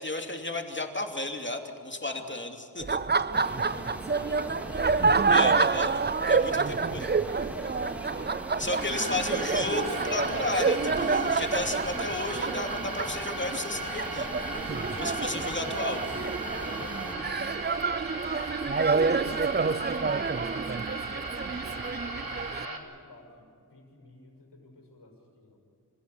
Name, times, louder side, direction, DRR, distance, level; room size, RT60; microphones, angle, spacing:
voice 1, 0.0-3.0 5.3-6.0 6.3-7.1 8.6-14.3 15.0-16.0, left 2 dB, 25° left, 4 dB, 2.7 m, -33 dB
voice 2, 2.0-2.4 3.0-5.1 6.1-7.1 7.6-8.4 9.0-9.3 14.6-15.8 16.5-22.1 22.5-25.6, left 3 dB, 70° left, 1 dB, 6.8 m, -51 dB
Laughter, 2.8-22.7, right 4 dB, 25° right, 0.5 m, -28 dB
sound 1, 3.3-17.2, equal, 5° right, 3.5 m, -41 dB
sound 2, 8.6-22.8, right 3 dB, 55° right, 3.1 m, -37 dB
27.5 x 15.5 x 9.8 m, 2.7 s
wide cardioid pair, 75°, 41 cm